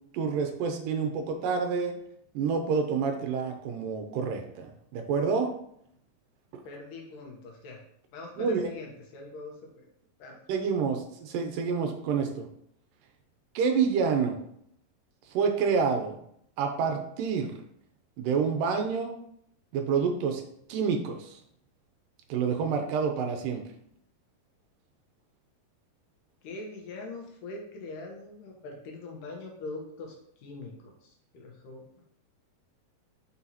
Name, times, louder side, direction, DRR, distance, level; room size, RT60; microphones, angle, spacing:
voice 1, 0.1-2.0 2.3-4.7 4.9-5.5 6.5-6.6 8.4-8.6 10.5-12.5 13.6-14.4 15.3-16.2 16.6-17.6 18.2-19.2 19.7-20.4 20.7-21.4 22.3-23.6, right 5 dB, 80° right, 4 dB, 2.3 m, -28 dB
voice 2, 6.6-7.8 8.1-9.8 10.2-10.4 26.4-30.1 30.4-32.0, left 3 dB, 75° left, 0 dB, 2.6 m, -42 dB
6.0 x 5.5 x 2.9 m, 0.70 s
omnidirectional pair, 4.0 m